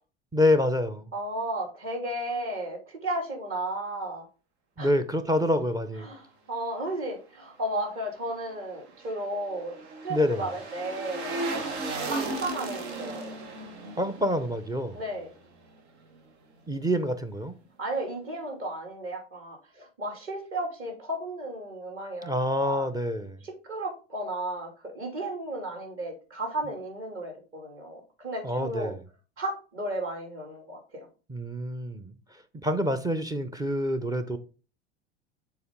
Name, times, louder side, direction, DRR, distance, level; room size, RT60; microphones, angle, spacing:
voice 1, 0.3-1.1 4.8-6.1 10.1-10.5 14.0-15.0 16.7-17.6 22.2-23.4 28.4-29.0 31.3-32.1 32.6-34.4, left 1 dB, 10° right, 0.6 m, -27 dB
voice 2, 1.1-4.2 4.8-4.9 6.0-11.7 12.1-13.3 14.9-15.3 17.8-22.9 23.4-24.7 24.9-28.9 29.4-31.1, right 1 dB, 40° right, 2.7 m, -34 dB
sound 1, 8.6-15.8 16.1-16.2, right 3 dB, 65° right, 1.4 m, -36 dB
6.9 x 4.1 x 3.7 m
figure-of-eight pair, 75°, 34 cm